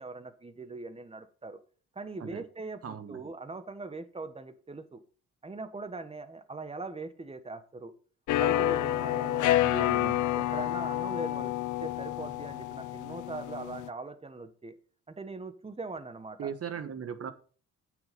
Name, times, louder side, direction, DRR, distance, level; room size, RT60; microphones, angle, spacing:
voice 1, 0.0-1.6 1.9-5.0 5.4-7.9 8.3-9.5 10.4-11.5 11.8-14.8 15.1-16.5, right 3 dB, 20° right, 10 dB, 1.4 m, -41 dB
voice 2, 2.8-3.3 9.6-10.2 16.4-17.3, right 7 dB, 50° right, 10 dB, 1.4 m, -38 dB
sound 1, 8.3-13.9, left 14 dB, 75° left, 0.6 m, -29 dB
8.7 x 6.7 x 5.3 m, 0.40 s
cardioid pair, 90°, 30 cm